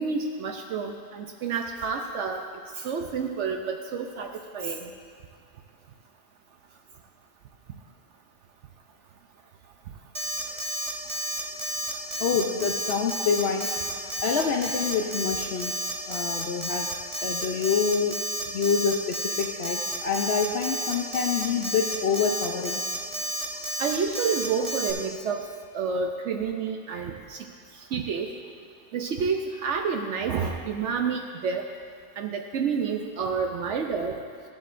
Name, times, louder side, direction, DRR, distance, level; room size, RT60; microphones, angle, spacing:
voice 1, 0.0-2.4 2.8-4.9 23.8-25.5 25.7-27.4 27.9-28.3 28.9-31.6 32.2-34.2, right 5 dB, 65° right, 3 dB, 0.8 m, -29 dB
Alarm, 10.1-24.9, equal, 35° right, 0.5 m, -31 dB
voice 2, 12.2-13.7 14.2-15.7 16.1-16.9 17.2-18.1 18.5-22.8, left 6 dB, 65° left, 1 dB, 0.6 m, -26 dB
14.5 x 7.2 x 2.5 m, 2.3 s
omnidirectional pair, 1.6 m